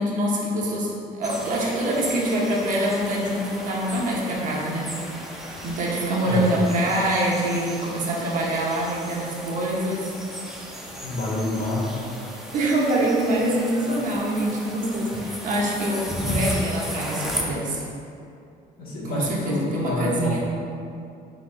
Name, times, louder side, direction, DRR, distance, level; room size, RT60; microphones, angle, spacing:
voice 1, 0.0-5.2 5.6-10.1 12.5-17.8 19.1-20.4, right 1 dB, 50° right, -3 dB, 0.8 m, -25 dB
sound 1, 1.2-17.4, equal, ahead, 0.5 m, -35 dB
voice 2, 11.0-12.0 15.1-15.2 18.8-20.4, left 2 dB, 60° left, -5 dB, 1.4 m, -27 dB
3.9 x 2.8 x 4.0 m, 2.5 s
cardioid pair, 110°, 17 cm